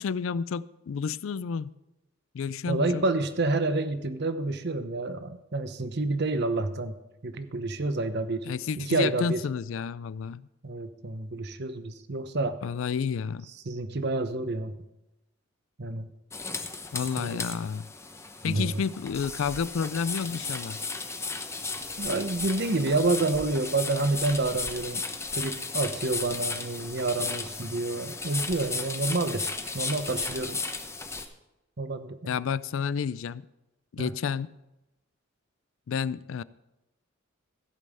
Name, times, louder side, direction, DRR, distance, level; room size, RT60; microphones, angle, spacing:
voice 1, 0.0-1.7 2.3-3.0 8.5-10.5 12.6-13.5 16.9-17.9 18.4-20.8 32.3-33.4 33.9-34.5 35.9-36.4, left 6 dB, 70° left, 19 dB, 0.4 m, -30 dB
voice 2, 2.7-6.9 7.2-8.5 8.7-9.4 10.6-12.6 13.7-14.8 15.8-16.1 17.2-17.4 18.4-18.8 22.0-25.0 25.3-30.6 31.8-32.4 34.0-34.1, right 2 dB, 55° right, 10 dB, 0.9 m, -29 dB
sound 1, 16.3-31.3, left 4 dB, 15° left, 0.8 m, -35 dB
15.5 x 5.4 x 7.6 m, 0.96 s
head